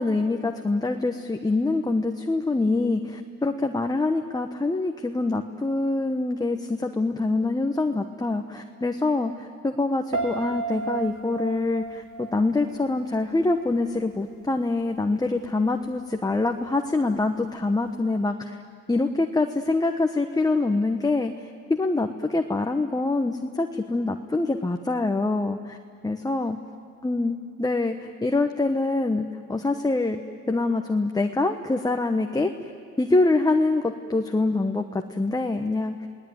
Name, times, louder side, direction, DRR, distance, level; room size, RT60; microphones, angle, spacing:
voice 1, 0.0-18.6 18.9-25.8 26.0-26.6 27.0-30.2 30.5-32.5 33.0-36.1, left 2 dB, 10° left, 5 dB, 1.1 m, -25 dB
Piano, 10.1-13.2 13.5-13.9, right 4 dB, 70° right, 3.8 m, -33 dB
29.0 x 18.5 x 9.5 m, 2.3 s
cardioid pair, 90°, 30 cm